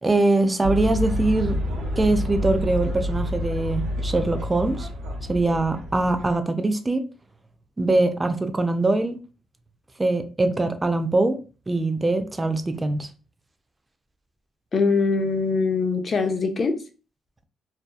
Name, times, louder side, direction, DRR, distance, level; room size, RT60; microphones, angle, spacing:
voice 1, 0.0-1.6 2.0-4.9 5.3-7.0 7.8-9.2 10.0-11.4 11.7-13.1, right 2 dB, 20° right, 0.4 m, -22 dB
sound 1, 0.6-6.4, left 1 dB, 80° right, 0.7 m, -28 dB
voice 2, 14.7-16.8, left 4 dB, 40° left, 0.5 m, -22 dB
2.7 x 2.1 x 2.2 m
cardioid pair, 90°, 0 cm